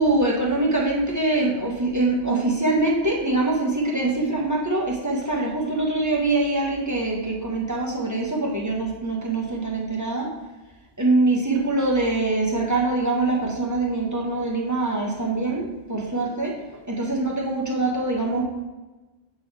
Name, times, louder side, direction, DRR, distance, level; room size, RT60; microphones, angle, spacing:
voice 1, 0.0-10.3 11.0-16.5 16.9-18.4, right 2 dB, 15° right, -3 dB, 1.1 m, -23 dB
8.2 x 3.9 x 4.6 m, 1.1 s
omnidirectional pair, 1.2 m